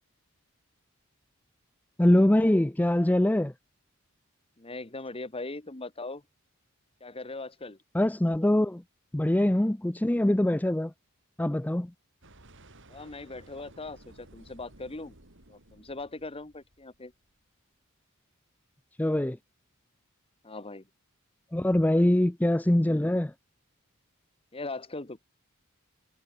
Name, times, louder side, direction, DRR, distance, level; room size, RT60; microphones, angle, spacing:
voice 1, 2.0-3.5 7.9-8.8 9.1-10.9 11.4-11.9 19.0-19.4 21.5-23.3, left 1 dB, 5° left, 0.4 m, -23 dB
voice 2, 4.6-6.2 7.0-7.8 12.9-15.2 15.5-17.1 20.4-20.9 24.5-25.2, left 3 dB, 25° left, 1.5 m, -40 dB
sound 1, 12.2-17.4, right 1 dB, 60° right, 6.3 m, -55 dB
head